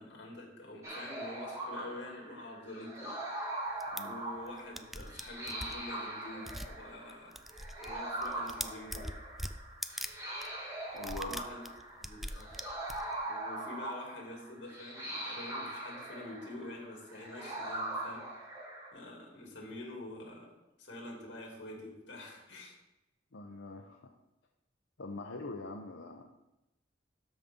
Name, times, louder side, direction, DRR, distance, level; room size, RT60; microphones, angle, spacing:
voice 1, 0.0-3.1 3.4-3.6 4.0-7.4 7.8-9.1 11.2-11.6 12.0-12.7 13.2-18.7 18.9-20.5 20.8-22.7, left 1 dB, 65° left, -1 dB, 2.9 m, -47 dB
sound 1, 0.8-18.9, right 1 dB, 15° right, 2.3 m, -41 dB
sound 2, 3.8-4.0 4.5-4.6 4.7-5.8 6.4-6.7 7.1-7.9 8.2-10.1 10.4-10.5 11.0-13.2, equal, ahead, 0.3 m, -41 dB
voice 2, 10.9-11.4 23.3-24.0 25.0-26.3, left 2 dB, 90° left, 1 dB, 0.8 m, -43 dB
12.5 x 5.4 x 3.7 m, 0.94 s
head